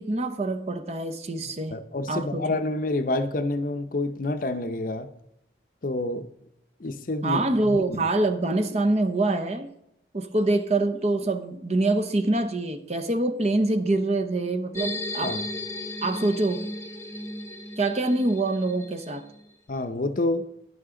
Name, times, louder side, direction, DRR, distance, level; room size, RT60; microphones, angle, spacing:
voice 1, 0.0-1.8 2.1-2.6 7.2-9.7 10.1-15.4 16.0-16.7 17.8-19.2, right 2 dB, 35° right, 0.8 m, -25 dB
voice 2, 1.7-5.1 5.8-6.3 6.8-7.8 15.2-15.4 19.7-20.5, left 2 dB, 45° left, 0.7 m, -28 dB
sound 1, 14.7-19.5, left 1 dB, 15° left, 0.9 m, -35 dB
10.5 x 10.5 x 3.8 m
head